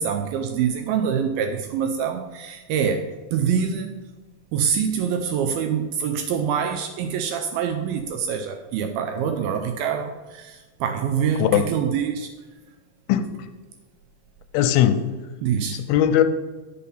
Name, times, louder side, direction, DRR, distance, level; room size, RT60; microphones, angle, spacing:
voice 1, 0.0-4.0 4.5-12.3 15.4-15.8, right 7 dB, 80° right, 6 dB, 2.5 m, -25 dB
voice 2, 13.1-13.5 14.5-15.0 15.7-16.2, left 10 dB, 85° left, 9 dB, 2.6 m, -19 dB
12.5 x 5.8 x 5.5 m, 1.2 s
omnidirectional pair, 4.4 m